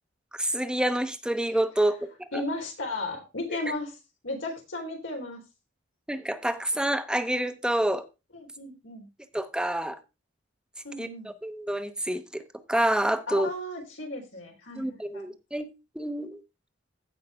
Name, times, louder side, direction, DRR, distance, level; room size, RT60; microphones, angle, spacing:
voice 1, 0.3-2.4 6.1-8.0 9.3-10.0 11.0-11.1 11.4-12.4 12.7-13.5 14.7-15.7 15.9-16.4, right 1 dB, 5° right, 10 dB, 0.8 m, -28 dB
voice 2, 2.3-3.9 4.2-5.4 8.3-9.1 10.8-11.3 13.3-15.3, left 2 dB, 80° left, 1 dB, 3.9 m, -35 dB
16.0 x 5.6 x 3.4 m, 0.26 s
head